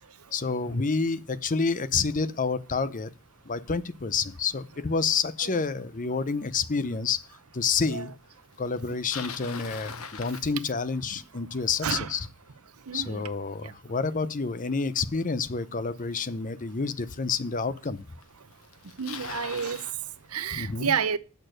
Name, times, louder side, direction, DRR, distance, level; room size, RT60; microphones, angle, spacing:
voice 1, 0.3-3.1 3.4-7.2 7.5-8.1 8.6-12.3 12.9-18.0 20.5-20.9, left 4 dB, 35° left, 0.7 m, -29 dB
Bicycle, 8.8-11.1 16.2-16.3 17.1-17.2 18.2-18.3 18.5-20.0, left 6 dB, 75° left, 1.3 m, -40 dB
voice 2, 12.9-13.2 13.6-13.7 19.0-19.8 20.3-21.2, right 6 dB, 80° right, 0.8 m, -29 dB
8.2 x 6.6 x 6.4 m
head